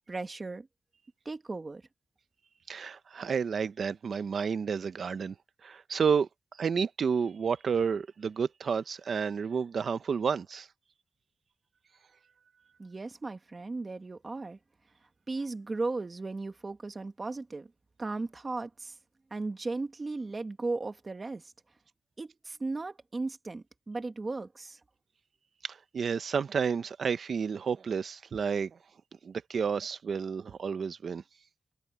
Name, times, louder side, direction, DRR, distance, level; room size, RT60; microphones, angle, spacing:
voice 1, 0.1-0.7 1.2-1.8 12.8-14.6 15.3-17.7 18.0-19.0 19.3-21.5 22.2-24.8, right 3 dB, 30° right, 1.5 m, -36 dB
voice 2, 2.7-5.4 5.6-10.7 25.6-28.8 29.2-31.2, right 6 dB, 60° right, 0.8 m, -31 dB
wide cardioid pair, 165°, 0 cm